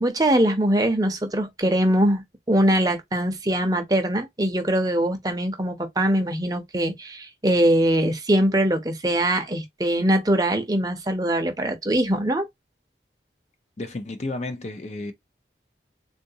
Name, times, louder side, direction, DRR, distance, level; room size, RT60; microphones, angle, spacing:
voice 1, 0.0-12.5, right 1 dB, 20° right, 0.7 m, -22 dB
voice 2, 13.8-15.1, left 2 dB, 40° left, 0.5 m, -32 dB
3.7 x 2.3 x 2.7 m
head